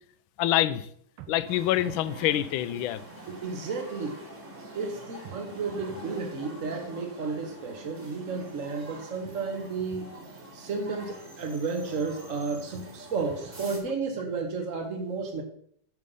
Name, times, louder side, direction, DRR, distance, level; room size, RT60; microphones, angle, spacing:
voice 1, 0.4-0.9 1.3-3.0, left 13 dB, 75° left, 14 dB, 1.4 m, -26 dB
sound 1, 1.2-2.1 5.2-6.1 9.2-10.1 12.7-13.7, right 10 dB, 85° right, 1.7 m, -48 dB
sound 2, 1.5-13.8, right 1 dB, 25° right, 1.9 m, -45 dB
voice 2, 3.3-4.3 4.7-10.1 10.5-15.4, right 4 dB, 45° right, 3 dB, 1.2 m, -32 dB
8.2 x 6.8 x 5.3 m, 0.65 s
omnidirectional pair, 2.3 m